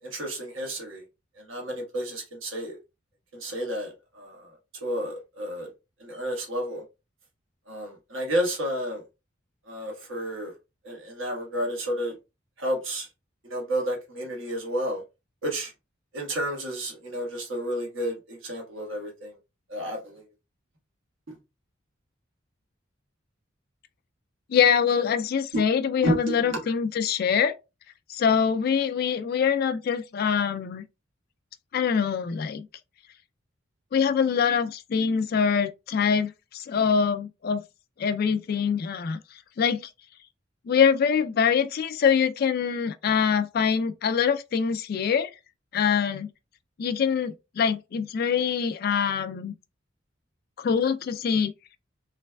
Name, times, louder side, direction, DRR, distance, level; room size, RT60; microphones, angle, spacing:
voice 1, 0.1-1.0 1.5-2.8 3.4-4.4 4.8-5.7 6.0-6.8 7.7-9.0 9.7-10.5 10.8-12.1 12.6-13.1 13.5-15.0 15.4-15.7 16.1-19.3 19.7-20.2 26.0-26.2, equal, 80° right, 1.3 m, -31 dB
voice 2, 24.5-27.5 28.1-30.8 31.7-32.7 33.9-37.6 38.0-39.2 39.6-39.9 40.7-45.3 45.7-46.3 46.8-49.5 50.6-51.5, left 7 dB, 50° left, 0.3 m, -24 dB
3.3 x 3.1 x 2.2 m
head